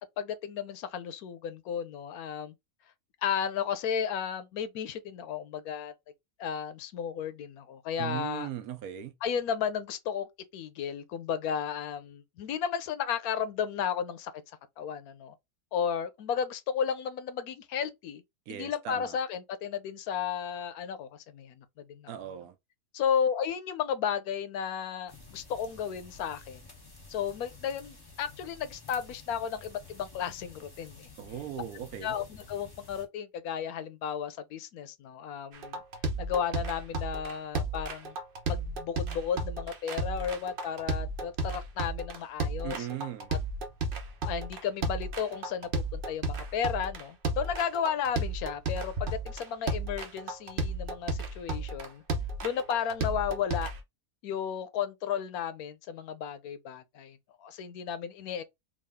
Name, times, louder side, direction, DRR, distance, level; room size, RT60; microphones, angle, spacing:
voice 1, 0.2-2.5 3.2-5.9 6.4-8.5 9.2-14.3 14.8-15.3 15.7-18.2 18.5-22.1 22.9-26.7 27.1-31.1 32.0-35.8 36.2-38.1 38.5-42.9 44.3-52.0 52.4-53.7 54.2-58.4, left 8 dB, 90° left, 1.1 m, -33 dB
voice 2, 8.0-9.1 18.5-19.2 22.1-22.5 31.2-32.2 42.6-43.3, right 10 dB, 85° right, 1.1 m, -38 dB
sound 1, 25.1-33.1, left 3 dB, 20° left, 0.9 m, -51 dB
sound 2, 35.5-53.8, right 2 dB, 45° right, 0.8 m, -33 dB
3.7 x 2.3 x 3.5 m
omnidirectional pair, 1.5 m